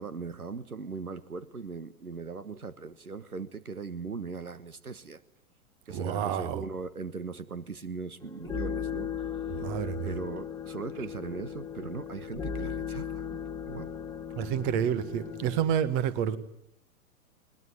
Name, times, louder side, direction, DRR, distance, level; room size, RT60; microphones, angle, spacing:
voice 1, 0.0-5.2 5.9-9.2 10.0-13.3 13.7-13.9, right 4 dB, 85° right, 1.3 m, -39 dB
voice 2, 5.9-6.6 9.5-10.1 14.4-16.4, right 9 dB, 35° right, 1.6 m, -29 dB
sound 1, 8.2-15.7, left 7 dB, 5° left, 1.4 m, -37 dB
22.0 x 20.0 x 9.7 m
figure-of-eight pair, 105°, 43 cm